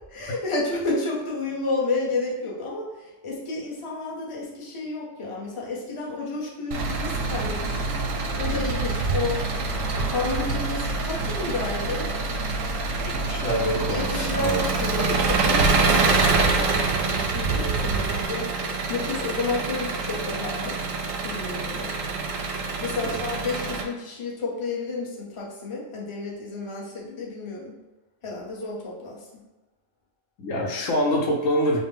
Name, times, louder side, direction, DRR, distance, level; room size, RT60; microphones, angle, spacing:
voice 1, 0.1-8.0 8.4-9.4 10.1-12.1 13.9-18.5 18.9-20.8 21.2-21.9 22.8-27.8 28.2-29.2, left 3 dB, 30° left, -3 dB, 0.7 m, -31 dB
Engine, 6.7-23.8, right 3 dB, 90° right, 1.0 m, -26 dB
voice 2, 13.0-14.6 23.0-23.2 30.4-31.8, equal, 80° left, 1 dB, 1.1 m, -25 dB
5.3 x 2.1 x 3.4 m, 1.1 s
omnidirectional pair, 1.3 m